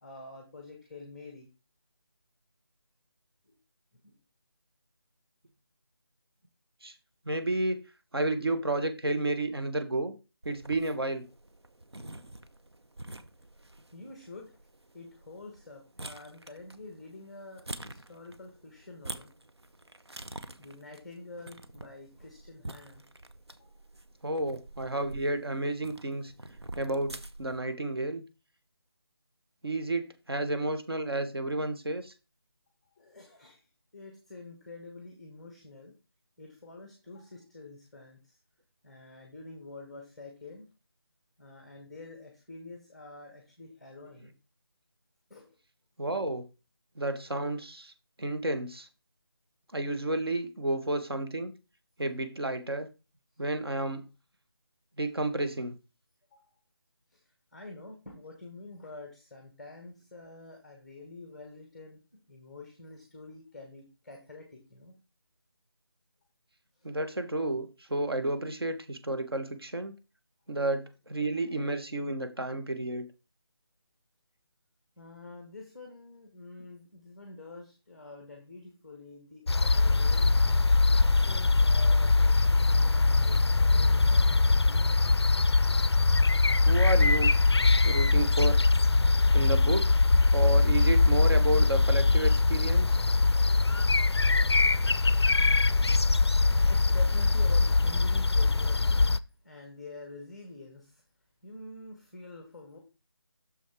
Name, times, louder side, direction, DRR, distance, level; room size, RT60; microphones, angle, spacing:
voice 1, 0.0-1.5 3.5-3.6 4.0-4.2 13.9-14.6 14.9-19.4 20.6-23.1 23.6-23.7 32.8-33.7 33.9-35.9 36.4-38.4 38.8-40.7 41.4-44.3 45.3-45.6 56.3-56.5 57.1-62.0 62.3-64.9 66.8-66.9 75.0-80.4 80.9-85.1 96.3-101.0 101.4-102.8, left 2 dB, ahead, 2 dB, 0.6 m, -47 dB
voice 2, 7.2-7.8 8.1-10.1 10.4-11.2 24.2-26.3 26.8-28.2 29.6-32.1 46.0-46.4 47.0-47.9 48.2-48.9 49.7-51.5 52.0-52.9 53.4-54.0 55.0-55.7 66.8-69.9 70.5-73.1 86.6-87.3 87.8-88.6 89.3-89.9 90.3-93.0, right 2 dB, 70° right, 8 dB, 1.4 m, -31 dB
sound 1, 10.4-27.6, right 1 dB, 85° right, 0.9 m, -47 dB
sound 2, 79.5-99.2, left 3 dB, 90° left, 0.4 m, -22 dB
6.4 x 6.3 x 3.5 m, 0.29 s
figure-of-eight pair, 160°, 13 cm